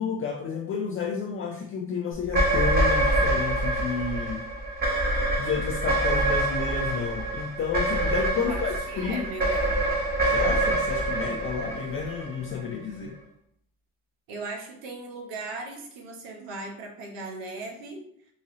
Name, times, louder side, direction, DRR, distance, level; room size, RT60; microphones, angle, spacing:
voice 1, 0.0-4.5 5.4-9.3 10.3-13.2, left 6 dB, 40° left, 0 dB, 0.5 m, -31 dB
sound 1, 2.2-12.7, right 1 dB, 25° right, 1.3 m, -26 dB
voice 2, 8.9-9.9 14.3-18.0, right 3 dB, 80° right, 1 dB, 1.0 m, -38 dB
3.8 x 2.5 x 2.9 m, 0.70 s
supercardioid pair, 80°, 35 cm